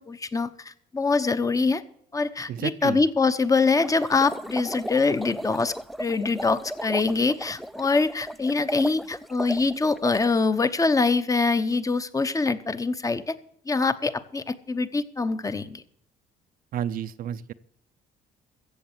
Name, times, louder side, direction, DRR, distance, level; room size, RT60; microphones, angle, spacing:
voice 1, 0.0-1.8 2.1-13.4 13.7-15.8, left 4 dB, 20° left, 13 dB, 0.9 m, -24 dB
voice 2, 2.5-3.0 16.7-17.5, right 10 dB, 60° right, 10 dB, 0.6 m, -31 dB
sound 1, 3.8-10.3, equal, ahead, 0.4 m, -35 dB
15.0 x 7.8 x 7.4 m, 0.69 s
cardioid pair, 110°, 17 cm